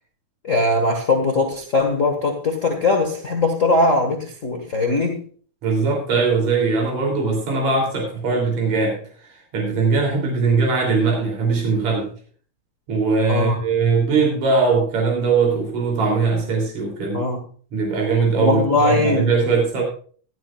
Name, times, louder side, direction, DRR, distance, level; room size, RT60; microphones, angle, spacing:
voice 1, 0.4-5.2 13.3-13.6 17.1-17.4 18.4-19.3, left 2 dB, 35° left, 2 dB, 1.4 m, -20 dB
voice 2, 5.6-12.1 12.9-17.2 17.7-19.8, right 4 dB, 70° right, 0 dB, 4.3 m, -20 dB
16.0 x 12.0 x 2.4 m, 0.43 s
omnidirectional pair, 3.3 m